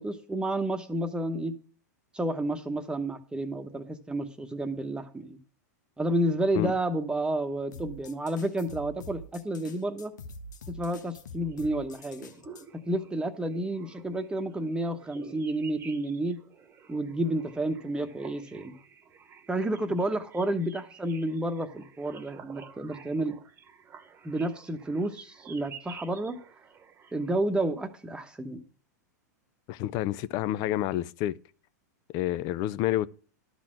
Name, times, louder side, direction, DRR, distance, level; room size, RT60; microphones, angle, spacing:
voice 1, 0.0-1.5 2.1-5.4 6.0-10.1 10.7-12.3 12.9-16.4 16.9-18.8 19.5-23.4 24.2-26.4 27.1-28.6, right 1 dB, 10° right, 1.0 m, -30 dB
sound 1, 7.7-12.6, equal, 85° left, 1.0 m, -45 dB
sound 2, 11.4-27.3, right 6 dB, 25° right, 1.1 m, -51 dB
voice 2, 29.7-31.4 32.1-33.1, left 13 dB, 45° left, 0.5 m, -29 dB
12.0 x 4.1 x 7.6 m
hypercardioid pair, 115°, 10 cm